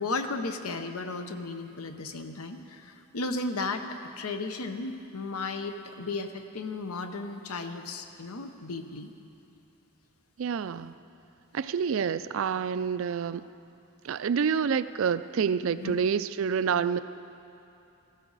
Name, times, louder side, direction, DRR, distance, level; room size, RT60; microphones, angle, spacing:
voice 1, 0.0-9.1 15.7-16.0, left 3 dB, 80° left, 7 dB, 0.9 m, -35 dB
voice 2, 10.4-10.9 11.5-13.4 14.0-17.0, right 6 dB, 60° right, 14 dB, 0.3 m, -28 dB
16.5 x 14.5 x 4.0 m, 2.8 s
head